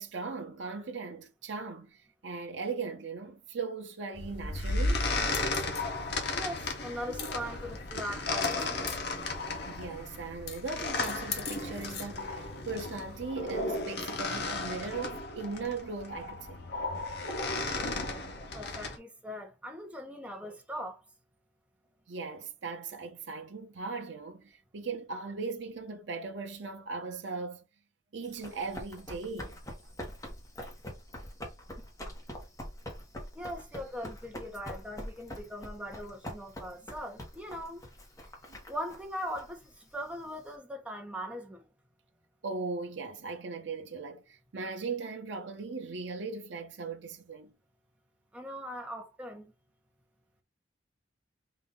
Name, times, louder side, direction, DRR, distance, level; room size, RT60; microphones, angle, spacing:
voice 1, 0.0-5.1 9.7-16.6 22.1-27.6 28.1-29.6 38.5-38.6 42.4-47.5, right 4 dB, 70° right, 0.7 m, -38 dB
sound 1, 4.1-19.0, left 3 dB, 60° left, 1.0 m, -34 dB
voice 2, 6.3-9.0 18.5-21.0 33.3-37.9 38.7-41.7 48.3-49.5, equal, 5° right, 0.8 m, -40 dB
Run, 28.2-40.5, equal, 20° left, 1.1 m, -44 dB
4.0 x 2.5 x 3.6 m
head